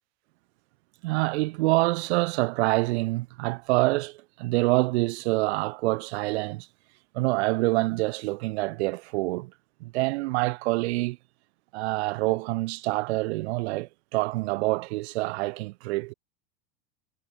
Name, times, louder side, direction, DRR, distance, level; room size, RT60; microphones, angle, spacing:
voice 1, 1.0-6.7 7.1-9.5 9.8-11.2 11.7-16.1, right 22 dB, 75° right, 0.8 m, -26 dB
supercardioid pair, 125°, 33 cm